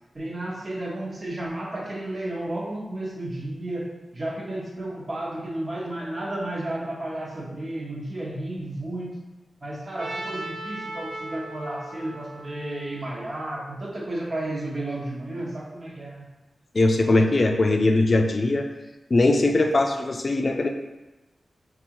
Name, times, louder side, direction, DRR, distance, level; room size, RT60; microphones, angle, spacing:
voice 1, 0.1-9.1 9.6-16.2, right 1 dB, 45° right, -3 dB, 1.2 m, -32 dB
Trumpet, 10.0-14.0, right 1 dB, 70° right, 1.1 m, -38 dB
voice 2, 16.7-18.7 19.1-20.7, left 2 dB, 50° left, 4 dB, 0.5 m, -20 dB
5.3 x 2.5 x 3.0 m, 1.1 s
cardioid pair, 45°, 0 cm